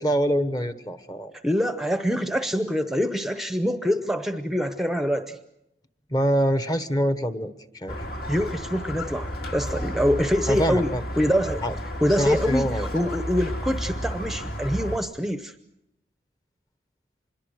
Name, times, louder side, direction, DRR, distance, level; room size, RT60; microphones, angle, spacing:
voice 1, 0.0-1.3 6.1-8.0 10.5-11.0 11.6-11.8 12.1-12.9, equal, 20° left, 11 dB, 1.0 m, -25 dB
voice 2, 1.4-5.4 8.3-11.6 12.0-15.6, equal, ahead, 8 dB, 0.8 m, -25 dB
Squeak, 7.9-15.0, equal, 55° left, 2.5 m, -32 dB
26.0 x 22.0 x 6.4 m, 0.85 s
head